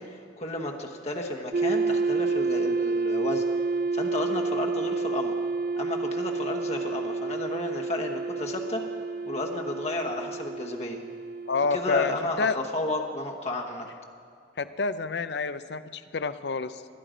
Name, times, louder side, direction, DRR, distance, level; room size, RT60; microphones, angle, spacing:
voice 1, 0.0-3.6 3.9-5.3 5.8-8.8 9.2-11.0 11.7-13.9, left 2 dB, 35° left, 1 dB, 1.1 m, -32 dB
sound 1, 1.5-12.2, right 3 dB, 55° right, 0.5 m, -29 dB
voice 2, 11.5-12.6 14.6-17.0, left 4 dB, 65° left, 13 dB, 0.6 m, -28 dB
21.0 x 11.5 x 5.1 m, 2.2 s
head